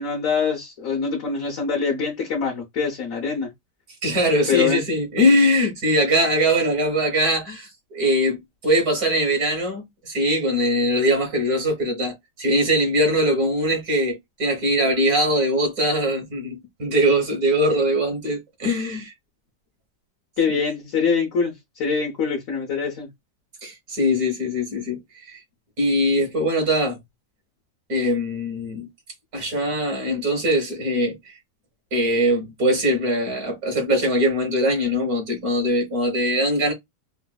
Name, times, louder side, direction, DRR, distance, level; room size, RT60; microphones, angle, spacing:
voice 1, 0.0-3.5 4.5-4.8 20.4-23.1, left 5 dB, 55° left, 1.1 m, -24 dB
voice 2, 4.0-8.4 8.6-19.1 23.6-25.0 25.2-25.4 25.8-27.0 27.9-28.9 29.3-31.3 31.9-36.7, equal, 60° right, 1.7 m, -21 dB
3.9 x 2.6 x 2.2 m
omnidirectional pair, 1.8 m